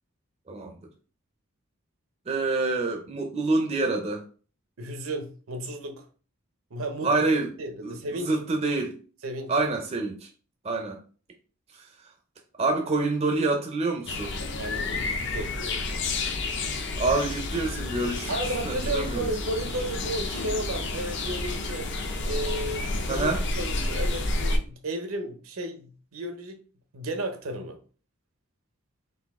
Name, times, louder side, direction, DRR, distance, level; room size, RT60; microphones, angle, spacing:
voice 1, 2.3-4.2 7.0-7.5 7.8-8.9 9.5-10.3 10.6-11.0 11.7-11.8 12.6-14.3 17.0-19.3 23.1-23.4, right 3 dB, 30° right, 0.5 m, -27 dB
voice 2, 4.8-6.1 6.7-7.3 7.6-8.4 9.2-9.5 14.6-16.0 18.3-21.9 22.2-26.6 26.9-27.8, right 1 dB, 70° right, 0.7 m, -33 dB
sound 1, 14.1-24.6, left 2 dB, 55° left, 0.5 m, -30 dB
4.0 x 2.6 x 3.5 m
head